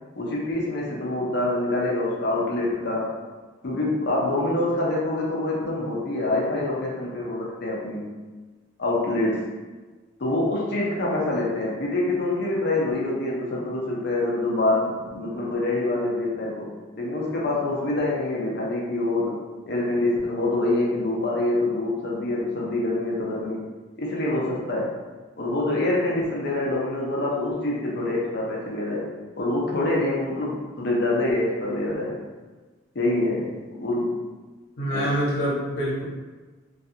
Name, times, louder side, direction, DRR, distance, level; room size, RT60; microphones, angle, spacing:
voice 1, 0.2-3.2 3.6-8.1 8.8-9.5 10.2-23.7 24.0-24.9 25.4-32.2 32.9-34.2 34.9-35.1, left 2 dB, 55° left, -3 dB, 0.5 m, -26 dB
voice 2, 34.8-36.0, equal, 75° left, -6 dB, 0.9 m, -25 dB
2.4 x 2.3 x 2.7 m, 1.3 s
head